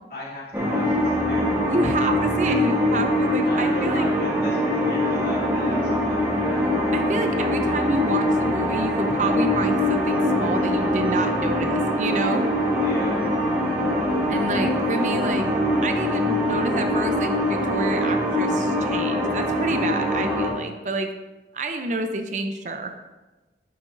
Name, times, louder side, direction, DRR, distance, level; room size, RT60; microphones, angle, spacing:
voice 1, 0.1-1.5 2.4-2.7 3.4-6.6 12.8-13.2, equal, 55° left, -7 dB, 2.7 m, -35 dB
sound 1, 0.5-20.5, left 1 dB, 10° right, 1.3 m, -23 dB
voice 2, 1.6-4.1 6.9-12.5 14.3-15.5 15.8-21.1 21.5-22.9, right 2 dB, 45° right, 6 dB, 0.6 m, -28 dB
11.0 x 6.8 x 2.6 m, 1.1 s
head